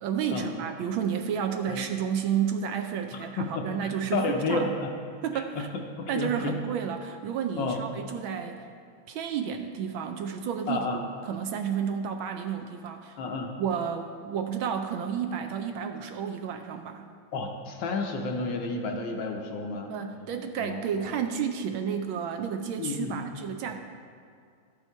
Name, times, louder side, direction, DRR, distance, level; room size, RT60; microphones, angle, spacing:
voice 1, 0.0-4.7 5.2-5.7 6.1-8.6 9.1-10.9 11.2-13.2 13.6-17.1 19.9-23.8, right 7 dB, 75° right, 6 dB, 1.2 m, -31 dB
voice 2, 3.1-4.9 5.3-5.7 6.0-6.6 7.6-7.8 10.7-11.0 13.2-13.5 17.3-19.9 20.6-20.8 22.8-23.2, left 3 dB, 70° left, 3 dB, 1.3 m, -31 dB
12.0 x 5.5 x 4.5 m, 2.2 s
omnidirectional pair, 2.4 m